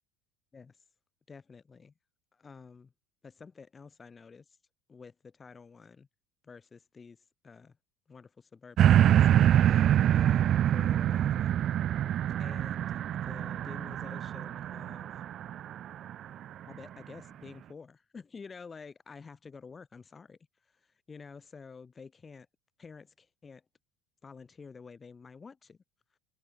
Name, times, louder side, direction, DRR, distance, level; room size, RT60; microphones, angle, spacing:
voice 1, 1.3-1.9 2.4-2.9 3.2-4.4 4.9-6.1 6.4-7.2 7.4-7.7 8.1-11.5 12.4-15.1 16.7-20.4 21.1-22.5 22.8-23.6 24.2-25.8, left 5 dB, 25° left, 7.6 m, -50 dB
sound 1, 8.8-16.2 16.7-16.8, right 11 dB, 45° right, 0.9 m, -25 dB
hypercardioid pair, 85°, 0 cm